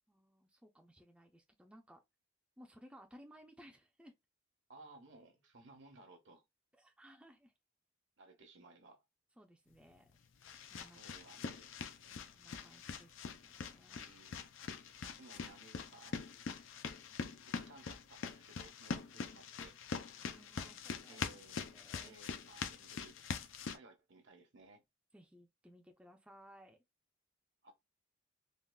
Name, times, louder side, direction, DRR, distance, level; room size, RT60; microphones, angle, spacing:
voice 1, 0.1-2.0 2.6-4.1 6.7-7.5 9.4-10.1 10.7-11.2 12.1-14.0 20.2-21.3 21.7-22.1 25.1-26.8, equal, 5° right, 0.4 m, -60 dB
voice 2, 4.7-6.4 8.2-9.0 10.9-12.4 14.0-14.5 15.0-16.4 17.5-19.8 21.1-21.6 22.0-23.2 23.7-24.8 27.6-27.7, right 2 dB, 70° right, 0.9 m, -59 dB
sound 1, 9.7-23.8, left 5 dB, 85° left, 0.5 m, -44 dB
3.6 x 2.4 x 2.3 m
head